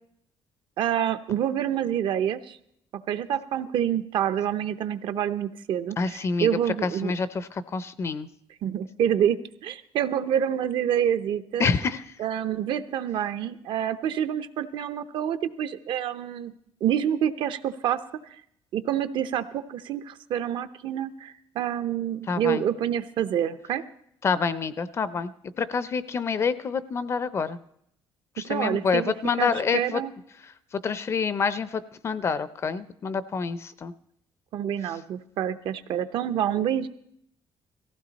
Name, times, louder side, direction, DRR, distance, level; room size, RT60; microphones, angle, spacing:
voice 1, 0.8-2.6 2.9-7.1 8.6-11.7 12.2-16.5 16.8-18.0 18.3-18.4 18.7-23.8 28.4-30.1 34.5-36.9, right 10 dB, 60° right, 11 dB, 0.7 m, -27 dB
voice 2, 6.0-6.5 6.8-8.3 11.6-12.0 22.3-22.6 24.2-25.3 25.6-27.6 28.4-30.0 30.8-33.9, left 5 dB, 30° left, 15 dB, 0.5 m, -27 dB
18.0 x 15.5 x 4.1 m, 0.72 s
cardioid pair, 175°, 9 cm